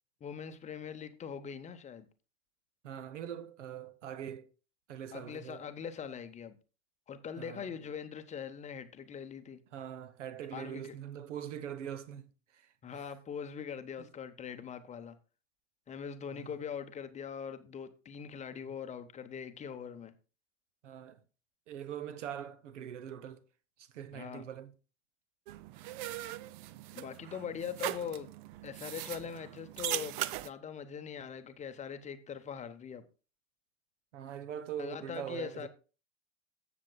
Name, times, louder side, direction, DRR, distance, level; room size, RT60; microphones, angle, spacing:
voice 1, 0.2-2.1 5.1-6.6 7.1-9.6 10.5-10.9 12.8-15.1 15.9-20.1 24.1-24.4 26.9-28.3 28.6-33.0 34.8-35.7, left 7 dB, 20° left, 0.8 m, -42 dB
voice 2, 2.8-4.5 4.9-5.6 7.3-7.7 9.7-13.1 14.0-14.1 16.3-16.5 18.6-18.7 20.8-21.2 21.7-23.4 23.8-24.7 34.1-35.7, right 9 dB, 65° right, 1.0 m, -43 dB
sound 1, 25.5-30.5, right 15 dB, 40° right, 0.5 m, -40 dB
15.0 x 6.8 x 2.3 m
figure-of-eight pair, 90°, 38 cm